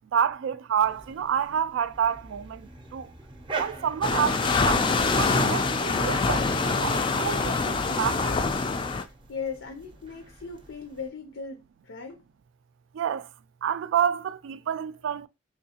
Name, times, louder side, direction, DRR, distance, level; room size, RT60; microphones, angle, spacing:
voice 1, 0.1-3.1 3.6-8.4 12.9-13.3 13.6-15.3, right 8 dB, 80° right, 0.3 m, -29 dB
sound 1, 0.8-11.1, right 4 dB, 25° right, 0.6 m, -44 dB
sound 2, 4.0-9.0, left 4 dB, 25° left, 0.3 m, -25 dB
voice 2, 9.0-12.2, left 5 dB, 85° left, 0.5 m, -38 dB
3.6 x 3.1 x 2.8 m
head